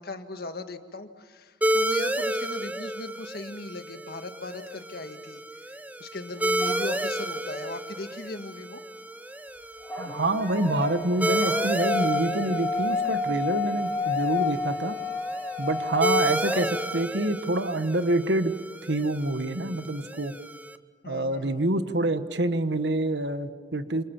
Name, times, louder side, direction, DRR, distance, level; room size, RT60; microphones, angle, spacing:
voice 1, 0.0-5.4 6.0-8.8 21.0-21.7, left 2 dB, 60° left, 7 dB, 1.8 m, -38 dB
sound 1, 1.6-20.8, right 1 dB, 10° right, 0.8 m, -32 dB
sound 2, 6.6-7.4 9.8-17.3, left 3 dB, 10° left, 2.5 m, -31 dB
voice 2, 10.0-15.0 15.6-18.5 18.9-20.3 21.1-24.0, right 1 dB, 75° right, 10 dB, 1.4 m, -27 dB
28.5 x 27.5 x 7.2 m, 1.4 s
head